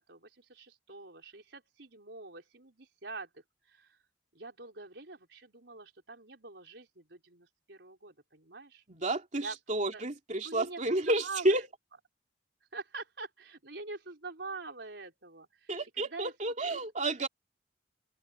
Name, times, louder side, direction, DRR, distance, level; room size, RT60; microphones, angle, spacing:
voice 1, 0.0-4.0 4.3-8.8 9.4-10.0 10.4-11.6 12.7-16.3 16.7-17.1, right 3 dB, 70° right, 5.0 m, -45 dB
voice 2, 8.9-11.6 15.7-17.3, right 2 dB, 45° right, 2.9 m, -31 dB
open air
head